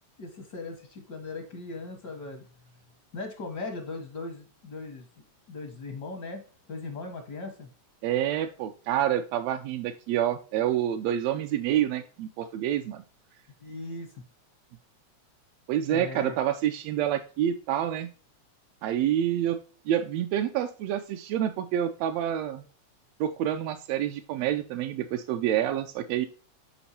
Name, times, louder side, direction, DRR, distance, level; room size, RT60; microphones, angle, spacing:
voice 1, 0.2-2.4 3.1-5.0 5.5-6.4 6.7-7.7 13.6-14.1 15.9-16.3, left 3 dB, 65° left, 3 dB, 1.0 m, -38 dB
voice 2, 8.0-13.0 15.7-18.1 18.8-19.6 19.9-22.6 23.2-26.3, right 11 dB, 80° right, 6 dB, 1.5 m, -28 dB
7.0 x 5.2 x 2.8 m, 0.39 s
omnidirectional pair, 3.3 m